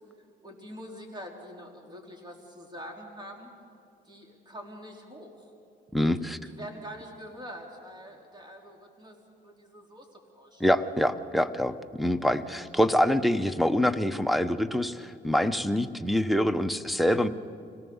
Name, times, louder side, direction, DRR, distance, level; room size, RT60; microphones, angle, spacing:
voice 1, 0.4-3.5 4.0-5.5 6.4-9.2 9.4-10.7, equal, 20° right, 1 dB, 4.1 m, -45 dB
voice 2, 5.9-6.4 10.6-17.3, equal, ahead, 13 dB, 0.9 m, -25 dB
25.5 x 18.0 x 7.2 m, 2.6 s
cardioid pair, 90°, 20 cm